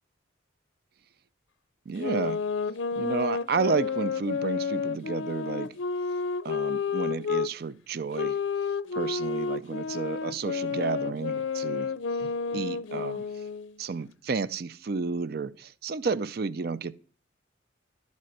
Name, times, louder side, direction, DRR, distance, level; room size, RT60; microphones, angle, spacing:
voice 1, 1.9-2.4 3.0-5.7 6.4-8.4 8.9-11.9 12.2-13.3 13.8-16.9, right 4 dB, 50° right, 0.4 m, -31 dB
sound 1, 2.0-7.5 8.1-13.7, left 5 dB, 75° left, 0.5 m, -30 dB
12.0 x 4.2 x 7.8 m
head